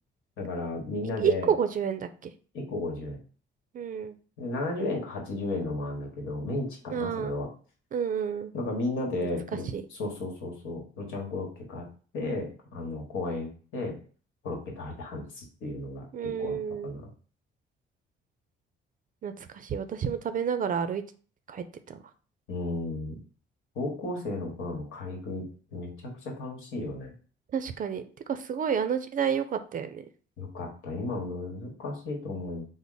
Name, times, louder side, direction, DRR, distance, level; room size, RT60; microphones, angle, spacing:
voice 1, 0.4-1.5 2.5-3.2 4.4-7.5 8.5-11.9 12.1-14.0 14.4-16.6 16.8-17.1 22.5-23.2 23.7-27.1 30.4-32.7, left 2 dB, 90° left, 0 dB, 1.1 m, -34 dB
voice 2, 1.2-2.3 3.7-4.2 6.9-7.3 7.9-8.5 9.7-9.8 16.1-16.9 19.2-21.0 21.5-22.0 27.5-28.0 28.3-30.0, right 7 dB, 45° right, 10 dB, 0.4 m, -30 dB
3.5 x 2.0 x 3.8 m, 0.40 s
cardioid pair, 90°, 20 cm